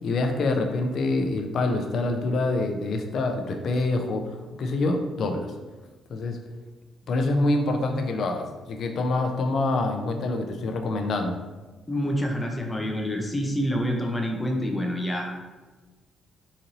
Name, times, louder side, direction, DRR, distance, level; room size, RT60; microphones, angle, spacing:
voice 1, 0.0-4.3 4.6-5.5 6.1-6.4 7.1-11.4, left 2 dB, 65° left, 5 dB, 0.5 m, -26 dB
voice 2, 11.9-15.4, equal, 15° left, 0 dB, 0.6 m, -27 dB
3.9 x 2.6 x 3.0 m, 1.2 s
cardioid pair, 90°, 0 cm